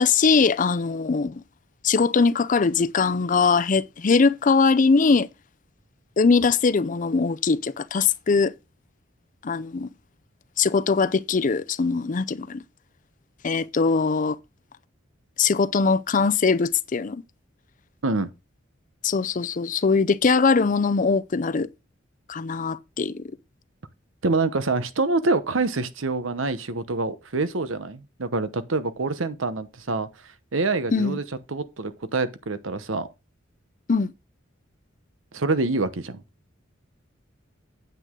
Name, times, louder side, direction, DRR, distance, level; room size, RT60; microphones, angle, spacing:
voice 1, 0.0-1.4 1.8-5.3 6.2-8.5 9.4-9.9 10.6-12.6 13.4-14.4 15.4-17.2 19.0-21.7 22.3-23.2 30.9-31.2 33.9-34.1, left 4 dB, 40° left, 0.5 m, -21 dB
voice 2, 24.2-30.1 30.5-31.2 31.5-33.1 35.3-36.2, right 3 dB, 85° right, 1.0 m, -26 dB
9.2 x 7.8 x 3.7 m
head